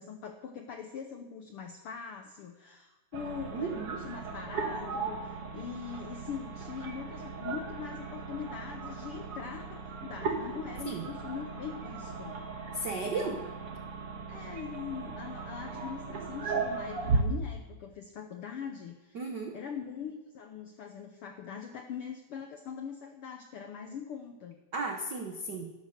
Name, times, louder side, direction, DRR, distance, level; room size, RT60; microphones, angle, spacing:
voice 1, 0.0-12.4 13.0-13.3 14.3-19.2 19.5-24.6, left 7 dB, 75° left, 5 dB, 1.2 m, -42 dB
sound 1, 3.1-17.2, right 4 dB, 50° right, 2.3 m, -37 dB
voice 2, 3.5-4.0 10.8-11.0 12.7-13.4 19.1-19.5 24.7-25.7, right 3 dB, 75° right, 3 dB, 0.9 m, -34 dB
12.5 x 11.5 x 6.6 m, 1.1 s
omnidirectional pair, 3.6 m